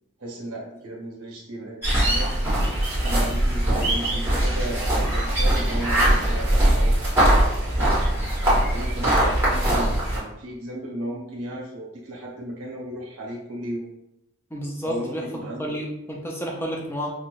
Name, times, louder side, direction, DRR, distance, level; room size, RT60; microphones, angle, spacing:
voice 1, 0.2-2.3 3.0-8.2 8.7-13.9 14.8-15.8, right 1 dB, 75° right, -3 dB, 1.3 m, -35 dB
sound 1, 1.8-10.2, right 1 dB, 10° right, 1.2 m, -21 dB
voice 2, 14.5-17.1, equal, 10° left, -1 dB, 0.6 m, -31 dB
5.6 x 2.4 x 2.5 m, 0.83 s
head